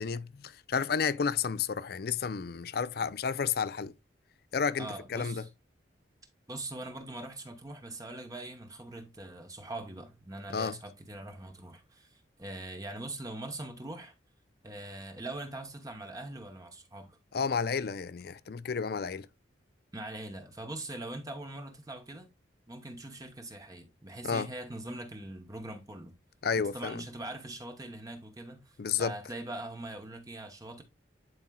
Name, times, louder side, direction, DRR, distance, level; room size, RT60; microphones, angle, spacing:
voice 1, 0.0-3.9 4.5-5.4 10.5-10.8 17.3-19.3 24.2-24.5 26.4-27.0 28.8-29.1, left 6 dB, 55° left, 0.4 m, -31 dB
voice 2, 4.8-5.5 6.5-14.1 14.6-17.2 19.9-22.3 22.7-26.1 26.6-30.8, right 2 dB, 20° right, 0.9 m, -42 dB
11.0 x 4.3 x 2.2 m
head